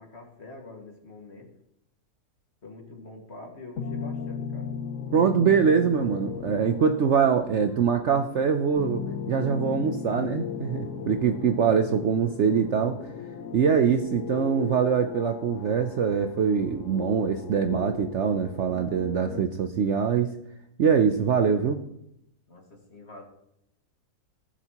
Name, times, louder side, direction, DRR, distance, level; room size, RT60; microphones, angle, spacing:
voice 1, 0.0-1.5 2.6-4.7 22.5-23.2, left 2 dB, 40° left, 1 dB, 2.2 m, -45 dB
sound 1, 3.8-19.4, left 7 dB, 60° left, 1.1 m, -37 dB
voice 2, 5.1-13.0 13.5-20.3 20.8-21.8, right 6 dB, 60° right, 6 dB, 0.8 m, -23 dB
17.5 x 7.2 x 3.0 m, 0.79 s
omnidirectional pair, 1.7 m